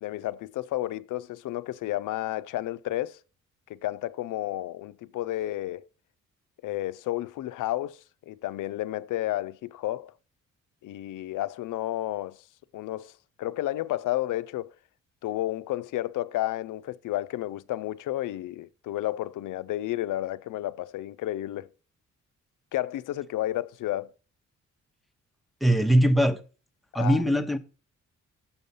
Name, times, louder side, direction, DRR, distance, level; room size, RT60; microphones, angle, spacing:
voice 1, 0.0-3.2 3.7-5.8 6.6-8.0 8.3-10.1 10.8-12.4 12.7-13.1 13.4-14.7 15.2-21.7 22.7-24.1 27.0-27.2, left 15 dB, 85° left, 0.5 m, -31 dB
voice 2, 25.6-26.4 26.9-27.6, equal, ahead, 0.7 m, -21 dB
7.0 x 5.4 x 5.3 m
cardioid pair, 95°, 31 cm